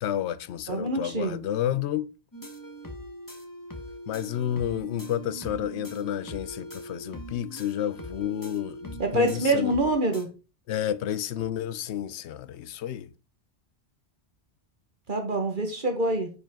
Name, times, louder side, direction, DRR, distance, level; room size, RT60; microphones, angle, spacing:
voice 1, 0.0-2.1 4.1-9.7 10.7-13.1, left 11 dB, 85° left, 0.9 m, -30 dB
voice 2, 0.7-1.5 9.0-10.3 15.1-16.3, right 1 dB, 50° right, 1.5 m, -26 dB
sound 1, 2.3-10.3, right 1 dB, 20° left, 1.2 m, -41 dB
9.7 x 5.3 x 3.7 m
omnidirectional pair, 1.1 m